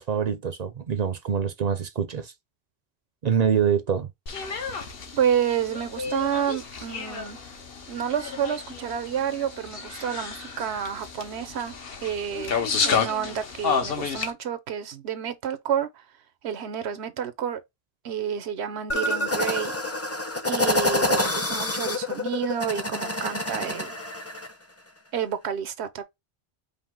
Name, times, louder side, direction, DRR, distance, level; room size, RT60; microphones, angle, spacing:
voice 1, 0.0-2.3 3.2-4.1, right 7 dB, 50° right, 0.5 m, -25 dB
sound 1, 4.3-14.3, left 6 dB, 65° left, 1.1 m, -31 dB
voice 2, 5.1-7.4 7.9-11.7 12.0-16.0 16.4-17.6 18.0-19.7 20.5-24.0 25.1-26.0, right 8 dB, 90° right, 1.0 m, -29 dB
sound 2, 18.9-24.5, left 2 dB, 15° left, 0.6 m, -27 dB
5.2 x 2.1 x 3.6 m
omnidirectional pair, 1.1 m